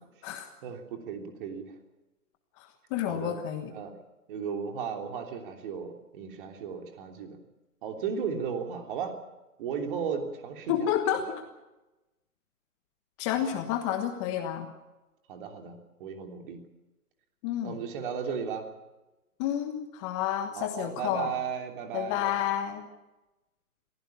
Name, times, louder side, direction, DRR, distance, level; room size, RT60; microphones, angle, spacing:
voice 1, 0.6-1.8 3.1-3.4 3.7-3.9 4.3-7.4 7.8-9.2 9.6-10.9 13.5-13.6 15.3-16.6 17.6-18.7 20.5-22.3, right 6 dB, 35° right, 4 dB, 3.3 m, -35 dB
voice 2, 2.6-3.7 10.7-11.4 13.2-14.7 17.4-17.8 19.4-21.3 21.9-22.9, left 10 dB, 20° left, 6 dB, 1.4 m, -30 dB
23.0 x 16.0 x 8.6 m, 1.0 s
figure-of-eight pair, 140°, 45 cm